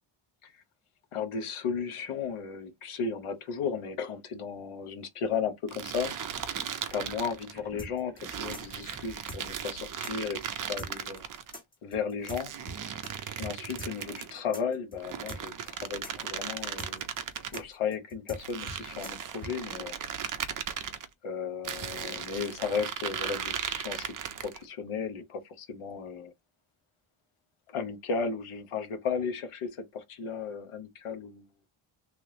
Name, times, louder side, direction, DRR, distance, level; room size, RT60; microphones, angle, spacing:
voice 1, 1.1-6.1 6.9-10.4 10.7-11.2 11.8-12.5 13.4-17.1 17.5-20.0 21.2-26.3 27.7-31.5, left 6 dB, 85° left, 1.0 m, -34 dB
sound 1, 5.7-7.6 8.2-11.5 12.2-14.4 15.0-17.6 18.3-21.1 21.6-24.6, right 8 dB, 45° right, 0.5 m, -37 dB
sound 2, 5.9-10.5, right 3 dB, 20° right, 0.8 m, -53 dB
sound 3, 7.8-13.1 13.4-13.5 13.8-19.5, right 1 dB, 15° left, 1.3 m, -43 dB
3.3 x 3.3 x 2.7 m
wide cardioid pair, 170°, 49 cm